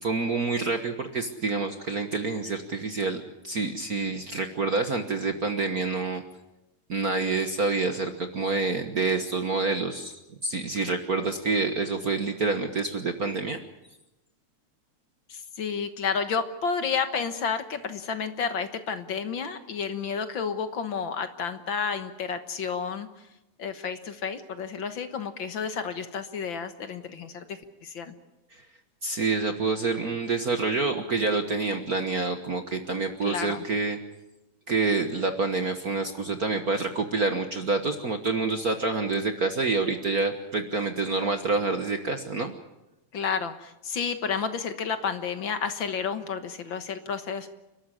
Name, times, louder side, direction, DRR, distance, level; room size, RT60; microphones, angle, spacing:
voice 1, 0.0-6.2 6.9-13.6 28.5-28.6 29.0-34.0 34.7-42.5, right 3 dB, 50° right, 7 dB, 1.1 m, -27 dB
voice 2, 15.3-23.1 23.6-28.1 33.2-33.6 43.1-47.5, left 6 dB, 55° left, 9 dB, 1.6 m, -31 dB
29.5 x 13.0 x 9.9 m, 0.96 s
omnidirectional pair, 3.3 m